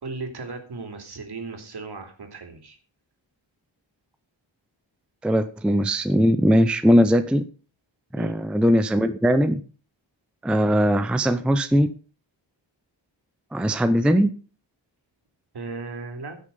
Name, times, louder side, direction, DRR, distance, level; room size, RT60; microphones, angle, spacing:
voice 1, 0.0-2.8 8.2-8.3 15.5-16.4, right 3 dB, 55° right, 5 dB, 2.9 m, -36 dB
voice 2, 5.2-7.4 8.1-9.6 10.4-11.9 13.5-14.3, equal, ahead, 10 dB, 0.6 m, -20 dB
15.5 x 6.6 x 5.3 m, 0.38 s
wide cardioid pair, 160°, 47 cm